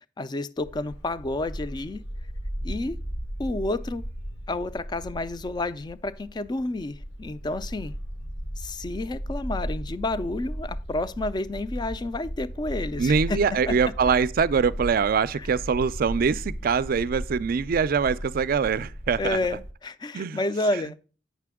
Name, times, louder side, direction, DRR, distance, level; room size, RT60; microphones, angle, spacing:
voice 1, 0.2-2.0 2.6-3.0 3.4-4.0 4.5-7.9 8.6-13.7 15.3-15.5 19.2-21.0, left 2 dB, 25° left, 0.4 m, -30 dB
Bark, 0.6-19.7, equal, 75° left, 1.2 m, -36 dB
voice 2, 13.0-19.4 20.1-20.4, right 6 dB, 55° right, 0.4 m, -23 dB
8.3 x 5.8 x 3.5 m
head